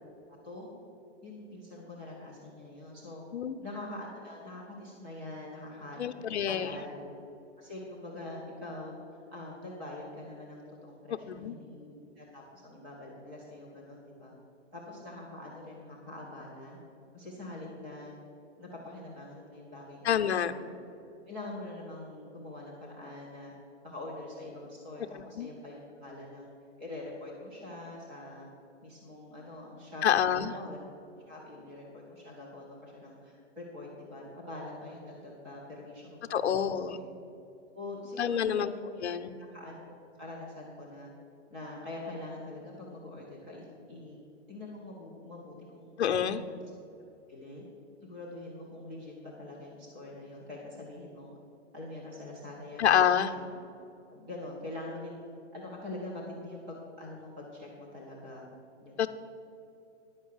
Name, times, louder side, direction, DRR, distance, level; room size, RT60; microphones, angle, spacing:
voice 1, 1.2-3.2 3.6-7.1 7.6-14.3 14.7-16.8 17.1-18.1 18.6-20.8 21.3-23.5 23.8-26.5 26.8-28.5 28.8-30.8 31.3-37.1 37.7-39.0 39.4-39.9 40.2-41.1 41.5-44.2 44.5-46.6 47.3-47.6 48.0-51.4 51.7-53.4 54.1-55.2 55.5-58.5 58.8-59.1, left 2 dB, 5° right, -5 dB, 0.4 m, -44 dB
voice 2, 6.0-6.8 11.3-11.6 20.0-20.5 25.4-25.5 30.0-30.5 36.3-37.0 38.2-38.7 39.0-39.3 46.0-46.4 52.8-53.3 59.0-59.1, left 9 dB, 65° left, 7 dB, 0.7 m, -27 dB
10.5 x 5.4 x 8.1 m, 2.7 s
hypercardioid pair, 160°, 36 cm